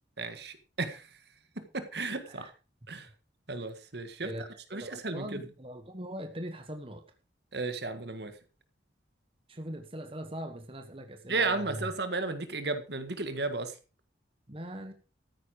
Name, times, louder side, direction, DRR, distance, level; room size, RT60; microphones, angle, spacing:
voice 1, 0.2-1.1 1.5-2.5 2.9-3.1 3.5-5.4 7.5-8.3 11.3-13.8, right 3 dB, 60° right, 10 dB, 1.7 m, -34 dB
voice 2, 4.2-7.0 9.5-11.9 14.5-14.9, right 1 dB, 30° right, 6 dB, 1.3 m, -41 dB
13.5 x 9.8 x 5.0 m, 0.33 s
head